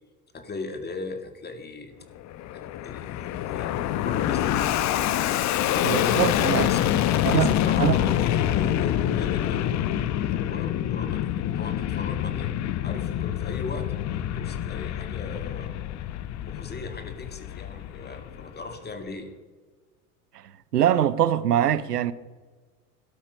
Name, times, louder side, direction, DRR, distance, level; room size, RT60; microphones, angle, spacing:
voice 1, 0.3-2.0 2.5-3.8 4.0-5.2 5.5-12.5 12.8-15.7 16.4-19.3, left 3 dB, 20° left, 2.2 m, -38 dB
Fixed-wing aircraft airplane, 2.2-18.8, left 12 dB, 40° left, 0.8 m, -26 dB
voice 2, 5.8-6.7 7.2-7.5 7.8-8.0 20.7-22.1, right 10 dB, 90° right, 0.8 m, -22 dB
13.0 x 11.5 x 5.4 m
hypercardioid pair, 90°, 46 cm